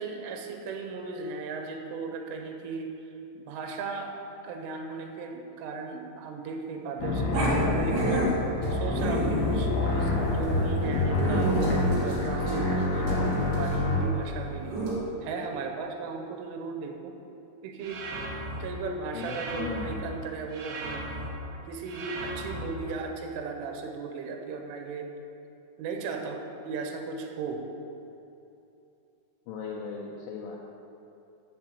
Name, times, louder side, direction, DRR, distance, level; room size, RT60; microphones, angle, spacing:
voice 1, 0.0-2.9 3.3-8.3 8.7-11.6 12.0-14.8 15.2-17.2 17.6-18.1 18.6-21.1 21.4-25.2 25.8-27.7, right 4 dB, 90° right, 4 dB, 3.3 m, -36 dB
sound 1, 7.0-14.0, left 2 dB, 60° left, 1.9 m, -27 dB
Growling, 7.3-15.0, right 1 dB, 50° right, 2.7 m, -31 dB
sound 2, 17.8-18.6 19.2-19.9 20.5-21.3 21.9-22.6, right 2 dB, 70° right, 3.3 m, -37 dB
voice 2, 19.1-20.0 29.5-30.6, left 5 dB, 80° left, -3 dB, 3.1 m, -37 dB
10.5 x 5.5 x 7.4 m, 2.8 s
omnidirectional pair, 5.7 m